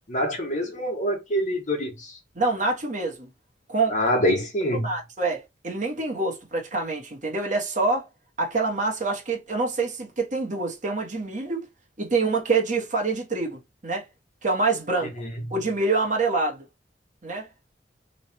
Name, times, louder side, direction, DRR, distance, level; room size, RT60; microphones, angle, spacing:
voice 1, 0.1-2.2 3.9-4.9 15.2-15.3, equal, 45° left, 1.3 m, -25 dB
voice 2, 2.3-3.3 3.7-3.9 4.7-8.1 8.4-11.7 12.0-14.0 14.4-15.1 15.5-16.6 17.2-17.5, right 3 dB, 45° right, 1.2 m, -26 dB
3.1 x 2.5 x 4.3 m
head